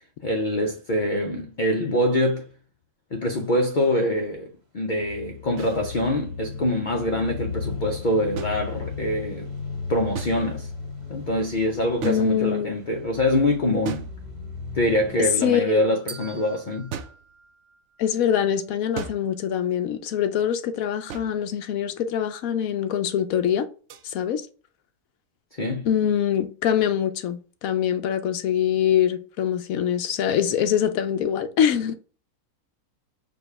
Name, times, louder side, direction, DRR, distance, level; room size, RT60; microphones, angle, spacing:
voice 1, 0.2-2.5 3.1-9.5 9.9-10.7 11.1-14.1 14.7-17.0 25.6-25.9, left 1 dB, 55° left, 0.5 m, -24 dB
sound 1, 5.0-15.3, left 5 dB, 85° right, 1.8 m, -36 dB
sound 2, 5.6-5.8 8.4-9.2 10.1-10.8 12.0-12.8 13.8-14.7 16.9-17.3 18.9-19.5 21.1-21.5 23.9-24.1, right 7 dB, 65° right, 0.8 m, -37 dB
voice 2, 12.0-12.8 15.2-15.9 18.0-23.7 24.0-24.4 25.8-32.0, left 9 dB, 70° left, 1.0 m, -24 dB
sound 3, 16.1-18.3, right 4 dB, 35° right, 0.5 m, -44 dB
4.9 x 2.3 x 4.6 m
omnidirectional pair, 1.6 m